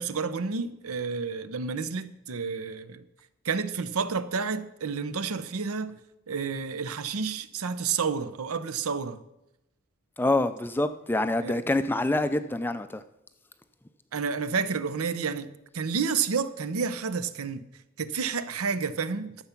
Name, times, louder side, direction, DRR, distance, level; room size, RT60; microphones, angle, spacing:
voice 1, 0.0-3.0 3.4-6.0 6.3-9.2 11.4-11.6 14.1-15.5 15.7-17.7 18.0-19.4, right 5 dB, 80° right, 0.7 m, -30 dB
voice 2, 10.2-13.0, left 2 dB, 10° left, 0.4 m, -26 dB
12.5 x 7.0 x 5.8 m
head